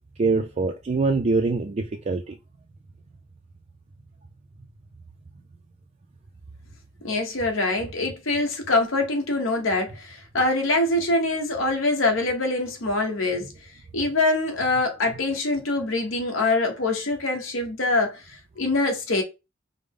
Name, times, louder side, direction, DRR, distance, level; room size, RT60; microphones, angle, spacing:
voice 1, 0.2-2.4, right 3 dB, 35° right, 0.4 m, -24 dB
voice 2, 7.0-13.5 13.9-18.2 18.6-19.2, left 2 dB, 85° left, 1.0 m, -24 dB
5.0 x 2.0 x 3.6 m
head